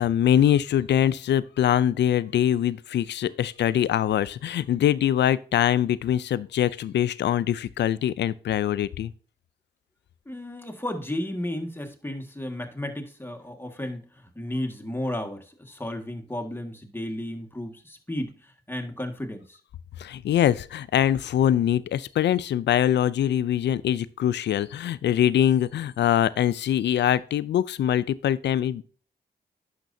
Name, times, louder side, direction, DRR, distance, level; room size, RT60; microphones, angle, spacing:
voice 1, 0.0-9.1 20.0-28.8, left 10 dB, 85° left, 0.4 m, -23 dB
voice 2, 10.3-14.0 14.4-19.6, left 1 dB, 10° left, 1.8 m, -33 dB
10.5 x 6.6 x 2.7 m
cardioid pair, 50°, 18 cm